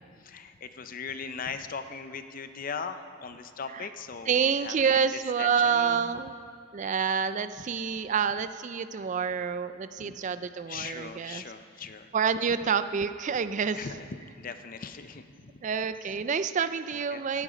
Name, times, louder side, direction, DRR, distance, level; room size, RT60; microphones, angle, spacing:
voice 1, 0.2-5.1 5.4-6.1 10.0-10.1 10.7-12.1 13.7-14.1 14.4-15.5 17.1-17.2, left 5 dB, 40° left, 10 dB, 0.5 m, -39 dB
voice 2, 4.3-6.3 6.7-11.4 12.1-13.8 15.6-17.4, right 6 dB, 35° right, 12 dB, 0.3 m, -28 dB
13.5 x 10.5 x 5.1 m, 2.2 s
head